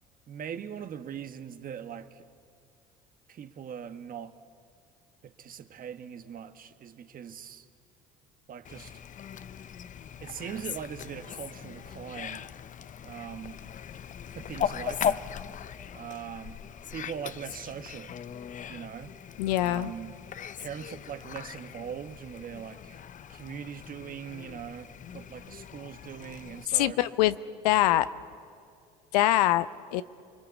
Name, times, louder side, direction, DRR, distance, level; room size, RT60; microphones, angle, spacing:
voice 1, 0.3-2.3 3.3-4.3 5.2-7.7 8.5-8.9 10.2-12.4 13.0-13.6 14.3-15.3 15.9-16.6 16.9-18.1 18.7-19.1 19.6-20.1 20.6-23.0 23.3-27.0, right 8 dB, 45° right, 1.5 m, -41 dB
Fowl, 8.6-26.6, left 8 dB, 40° left, 0.7 m, -39 dB
voice 2, 19.4-19.9 26.7-27.4 27.6-28.1 29.1-29.7 29.9-30.0, left 15 dB, 85° left, 0.7 m, -23 dB
29.0 x 21.0 x 8.4 m
hypercardioid pair, 70°, 20 cm